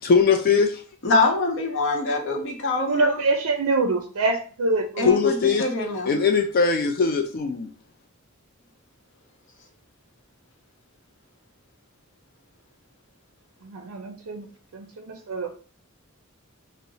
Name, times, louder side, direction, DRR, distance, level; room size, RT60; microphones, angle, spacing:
voice 1, 0.0-0.8 5.1-5.7 6.1-7.7, left 5 dB, 45° left, 5 dB, 0.3 m, -20 dB
voice 2, 1.0-3.2 5.0-6.1, left 3 dB, 60° left, 2 dB, 0.8 m, -24 dB
voice 3, 2.8-5.2 13.6-14.5 14.7-15.5, right 3 dB, 80° right, 5 dB, 0.5 m, -25 dB
2.7 x 2.0 x 4.0 m, 0.40 s
head